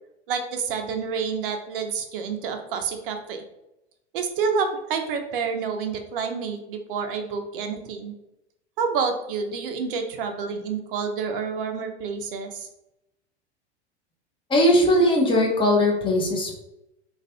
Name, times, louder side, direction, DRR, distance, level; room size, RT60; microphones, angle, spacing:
voice 1, 0.3-3.4 4.1-8.1 8.8-12.7, right 5 dB, 55° right, 6 dB, 0.6 m, -28 dB
voice 2, 14.5-16.5, left 1 dB, 15° left, 0 dB, 0.6 m, -19 dB
2.5 x 2.3 x 3.4 m, 0.89 s
figure-of-eight pair, 90°, 34 cm